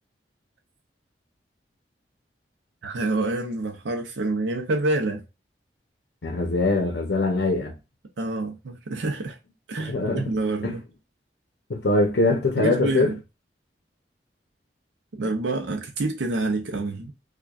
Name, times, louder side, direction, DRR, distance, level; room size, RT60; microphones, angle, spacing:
voice 1, 2.8-5.2 8.2-9.4 9.7-10.8 12.6-13.1 15.1-17.1, right 2 dB, 85° right, 0.6 m, -27 dB
voice 2, 6.2-7.8 9.8-10.3 10.6-10.8 11.7-13.1, left 2 dB, 80° left, 0.7 m, -23 dB
4.8 x 2.2 x 2.4 m
head